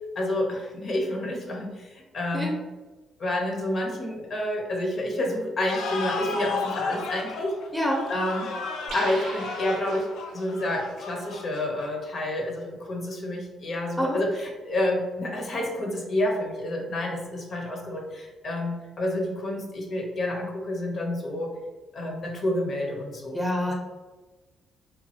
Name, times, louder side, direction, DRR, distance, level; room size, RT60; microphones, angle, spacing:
voice 1, 0.2-2.5 3.2-7.5 8.1-8.5 8.9-10.1 10.3-21.5 21.9-23.4, left 1 dB, 50° left, 0 dB, 0.6 m, -29 dB
sound 1, 5.7-12.1, left 4 dB, 85° left, 0.4 m, -34 dB
voice 2, 7.7-8.0 14.0-14.2 23.3-23.7, equal, ahead, -1 dB, 0.7 m, -26 dB
sound 2, 8.9-10.4, right 3 dB, 70° right, 0.6 m, -39 dB
3.0 x 2.2 x 2.7 m, 1.2 s
cardioid pair, 90°, 0 cm